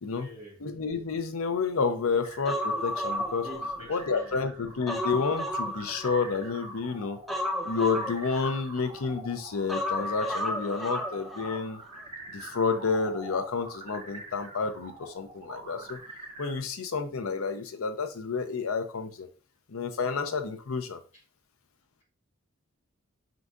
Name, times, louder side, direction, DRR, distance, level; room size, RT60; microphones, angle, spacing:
voice 1, 0.1-0.6 3.4-4.4 21.1-21.2, left 1 dB, 35° left, -5 dB, 2.3 m, -46 dB
voice 2, 0.6-3.4 3.9-7.2 7.6-11.8 12.3-16.0 16.4-19.3 19.7-21.0, left 5 dB, 90° left, 8 dB, 0.6 m, -30 dB
sound 1, 2.2-16.6, right 2 dB, 25° right, 2.2 m, -46 dB
Human voice, 2.4-4.2 4.6-6.6 7.3-9.0 9.7-11.6 11.9-12.0, left 1 dB, ahead, 0.6 m, -33 dB
4.6 x 3.8 x 2.5 m, 0.36 s
head